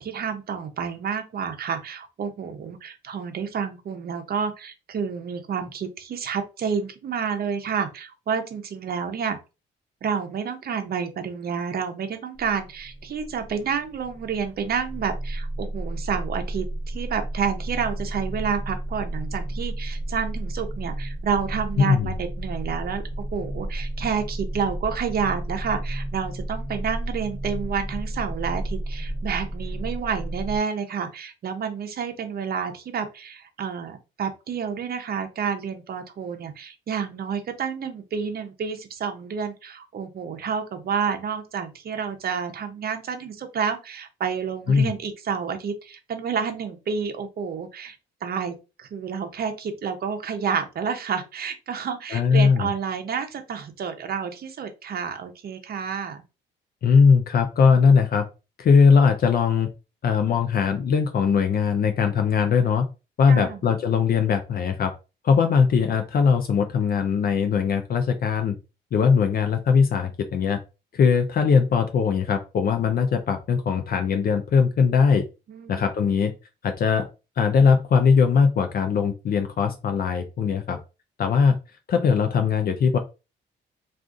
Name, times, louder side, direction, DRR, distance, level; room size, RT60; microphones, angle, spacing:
voice 1, 0.0-9.4 10.0-23.0 23.3-48.0 48.2-56.2 63.3-63.7 75.5-75.9, right 6 dB, 50° right, 7 dB, 0.7 m, -29 dB
sound 1, 12.4-30.6, right 1 dB, 30° left, 1.0 m, -32 dB
voice 2, 21.8-22.1 44.7-44.9 52.1-52.7 56.8-58.2 58.6-59.7 60.0-62.9 63.2-64.9 65.2-68.6 68.9-70.6 70.9-75.2 75.7-76.3 76.6-77.1 77.4-80.8 81.2-81.6 81.9-83.0, left 6 dB, 50° left, 6 dB, 0.5 m, -20 dB
2.5 x 2.4 x 3.6 m, 0.29 s
cardioid pair, 90°, 20 cm